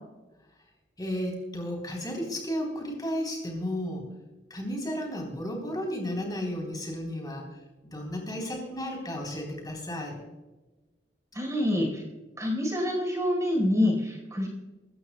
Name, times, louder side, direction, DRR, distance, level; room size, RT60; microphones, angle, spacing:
voice 1, 1.0-4.1 4.5-7.5 7.8-10.2, equal, 25° left, 0 dB, 3.5 m, -33 dB
voice 2, 11.3-12.0 12.4-14.5, left 1 dB, 20° right, 0 dB, 4.0 m, -26 dB
24.0 x 14.5 x 2.2 m, 1.1 s
head